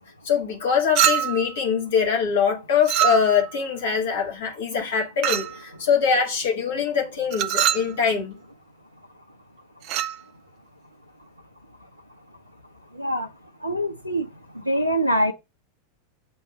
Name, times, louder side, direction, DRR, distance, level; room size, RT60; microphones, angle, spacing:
voice 1, 0.2-8.3, left 6 dB, 60° left, 2.4 m, -23 dB
Chink clink, 1.0-1.5 2.9-3.5 5.2-5.6 7.3-7.9 9.8-10.2, right 12 dB, 40° right, 0.5 m, -23 dB
voice 2, 13.6-14.2 14.7-15.3, equal, 90° right, 0.8 m, -23 dB
6.9 x 3.7 x 5.5 m
figure-of-eight pair, 90°, 0 cm